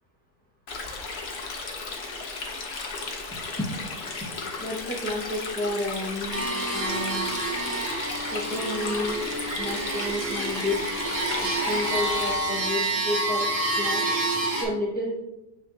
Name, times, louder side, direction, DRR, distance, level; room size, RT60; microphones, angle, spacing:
Stream, 0.7-12.3, left 3 dB, 45° left, 1.1 m, -35 dB
voice 1, 4.6-7.2 8.3-9.3 9.6-10.8 11.4-13.5 13.8-14.0 14.6-15.2, left 1 dB, 5° left, -3 dB, 1.2 m, -31 dB
sound 1, 6.3-14.6, right 2 dB, 60° right, 2.2 m, -28 dB
7.0 x 6.3 x 2.8 m, 0.93 s
omnidirectional pair, 1.7 m